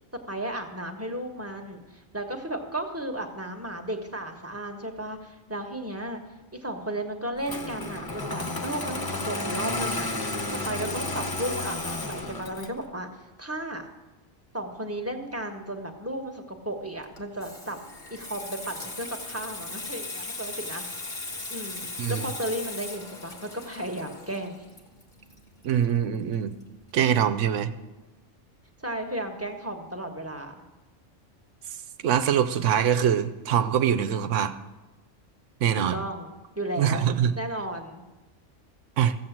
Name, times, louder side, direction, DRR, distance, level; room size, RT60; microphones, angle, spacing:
voice 1, 0.1-6.2 6.5-10.1 10.6-13.8 14.5-17.8 18.1-21.1 21.5-24.6 28.8-30.5 35.8-37.1 37.4-38.0, right 1 dB, 10° right, 3 dB, 1.3 m, -34 dB
Engine starting, 7.4-12.8, left 2 dB, 25° left, 0.6 m, -32 dB
Water tap faucet / Sink (filling or washing), 17.0-26.3 26.6-26.9, left 2 dB, 40° left, 1.7 m, -39 dB
voice 2, 25.6-26.5 26.9-27.7 32.0-34.6 35.6-36.0 36.8-37.3 39.0-39.2, right 9 dB, 80° right, 13 dB, 1.1 m, -23 dB
15.0 x 7.8 x 7.2 m, 1.2 s
omnidirectional pair, 1.3 m